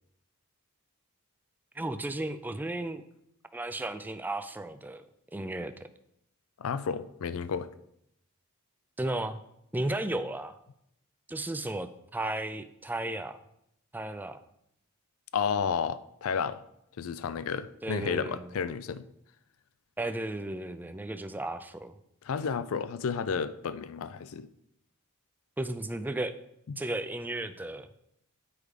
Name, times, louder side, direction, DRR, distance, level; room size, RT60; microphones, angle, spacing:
voice 1, 1.8-3.0 3.5-5.1 5.3-5.7 9.0-9.4 9.7-10.6 11.3-13.4 13.9-14.4 17.8-18.5 20.0-21.9 25.6-26.3 26.8-27.9, right 1 dB, 10° right, 10 dB, 0.4 m, -34 dB
voice 2, 6.6-7.7 15.3-16.6 17.0-19.1 22.2-24.5 26.7-26.8, left 6 dB, 65° left, 15 dB, 0.4 m, -32 dB
8.6 x 4.7 x 4.9 m, 0.77 s
head